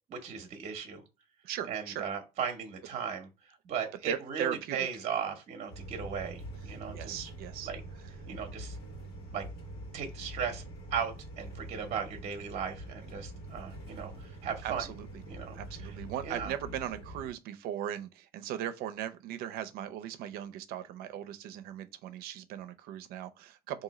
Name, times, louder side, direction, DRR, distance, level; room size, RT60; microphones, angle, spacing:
voice 1, 0.1-1.0 1.7-3.3 3.6-7.3 7.6-7.8 8.3-8.8 9.3-9.4 9.9-10.6 10.9-14.8 15.3-15.9 16.2-16.5, right 7 dB, 45° right, 0.8 m, -37 dB
voice 2, 1.4-2.0 4.0-4.9 6.7-7.7 14.6-15.2 15.5-23.8, right 11 dB, 75° right, 0.5 m, -38 dB
sound 1, 5.7-17.3, right 1 dB, 80° left, 1.5 m, -45 dB
3.7 x 2.7 x 3.0 m
cardioid pair, 125°, 16 cm